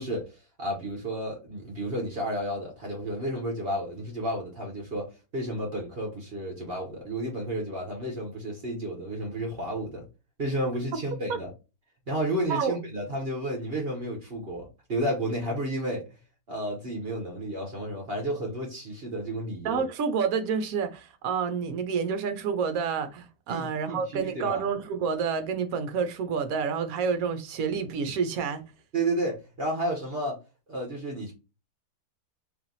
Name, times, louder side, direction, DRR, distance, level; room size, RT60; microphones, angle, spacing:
voice 1, 0.0-10.1 10.4-11.5 12.1-16.0 16.5-19.8 23.5-24.6 28.9-30.4 30.7-31.3, right 1 dB, 40° right, 1.2 m, -32 dB
voice 2, 19.6-28.6, right 6 dB, 65° right, 1.0 m, -29 dB
3.3 x 2.7 x 3.9 m
omnidirectional pair, 1.7 m